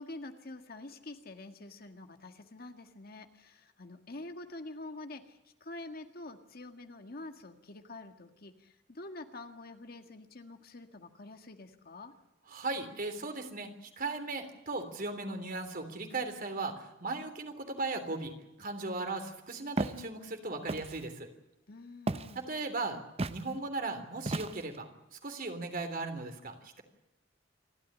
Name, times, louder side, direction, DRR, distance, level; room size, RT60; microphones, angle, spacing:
voice 1, 0.0-12.1 21.7-22.5, left 2 dB, 55° left, 6 dB, 1.8 m, -47 dB
voice 2, 12.5-21.3 22.3-23.0 23.3-26.8, right 3 dB, 50° right, 7 dB, 3.3 m, -37 dB
Walk footsteps, 19.8-20.0 20.7-21.0 22.1-22.4 23.2-23.4 24.2-24.8, right 2 dB, 35° right, 0.8 m, -34 dB
28.0 x 12.5 x 10.0 m, 0.92 s
head